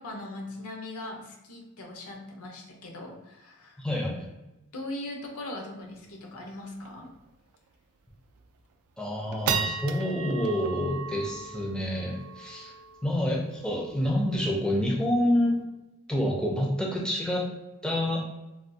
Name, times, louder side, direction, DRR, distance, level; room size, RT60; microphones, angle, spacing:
voice 1, 0.0-3.8 4.7-7.1, left 1 dB, 85° left, 1 dB, 0.7 m, -40 dB
voice 2, 3.8-4.3 9.0-12.7 13.0-15.6 16.1-17.5 17.8-18.2, left 1 dB, 5° left, -3 dB, 0.4 m, -28 dB
sound 1, 5.9-6.0 6.3-6.4 6.8-7.1 7.5-7.6 8.2-8.5 9.0-15.6, right 6 dB, 85° right, 0.3 m, -36 dB
3.4 x 2.3 x 2.6 m, 0.99 s
head